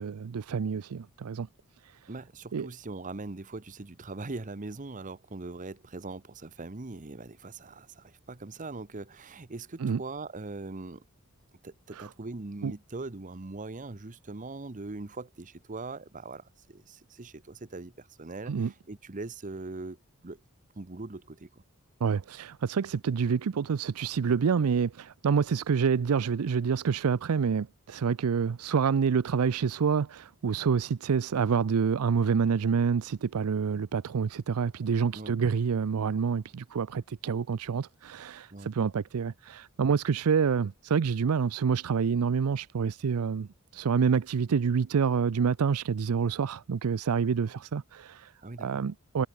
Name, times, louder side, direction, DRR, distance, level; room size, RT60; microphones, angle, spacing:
voice 1, 0.0-1.5 1.8-2.1 2.5-2.7 9.8-10.0 11.9-12.1 12.6-12.7 18.5-18.7 22.0-48.3 48.6-49.3, right 6 dB, 85° right, 0.5 m, -27 dB
voice 2, 2.1-11.0 11.6-20.0 20.2-20.4 20.8-21.5 35.1-35.3 38.5-38.7 48.4-48.8, right 3 dB, 35° right, 0.9 m, -41 dB
head